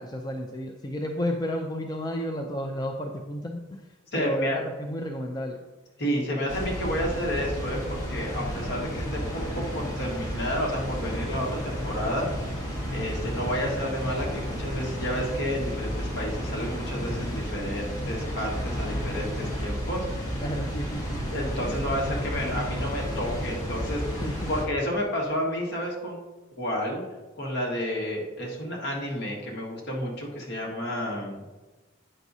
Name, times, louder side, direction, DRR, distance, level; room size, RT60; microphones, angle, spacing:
voice 1, 0.0-3.8 4.1-5.6 20.4-21.2 24.2-24.5, equal, 20° left, 2 dB, 0.4 m, -32 dB
voice 2, 4.1-4.6 6.0-12.3 12.9-20.4 21.3-24.2 24.5-26.2 26.6-27.0 27.4-31.4, equal, 55° left, -2 dB, 1.6 m, -30 dB
Water, 6.5-24.6, equal, 35° left, 1.9 m, -32 dB
8.8 x 5.9 x 2.7 m, 1.2 s
head